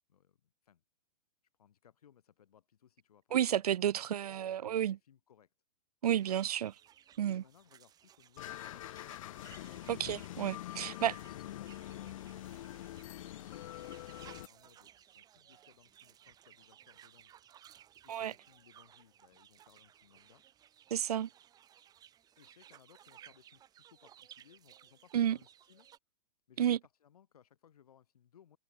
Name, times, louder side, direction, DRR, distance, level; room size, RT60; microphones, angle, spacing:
voice 1, 0.1-0.8 1.6-3.5 3.8-5.5 7.3-9.2 10.6-17.3 18.0-20.4 22.4-25.9 26.5-28.6, left 9 dB, 75° left, 6.4 m, -64 dB
voice 2, 3.3-5.0 6.0-6.7 7.2-7.4 9.9-11.1 18.1-18.3 20.9-21.3 25.1-25.4 26.6-26.8, right 10 dB, 85° right, 0.7 m, -31 dB
sound 1, 6.1-26.0, right 10 dB, 20° right, 6.9 m, -60 dB
sound 2, 8.4-14.5, left 14 dB, 60° left, 0.4 m, -45 dB
hypercardioid pair, 150°, 19 cm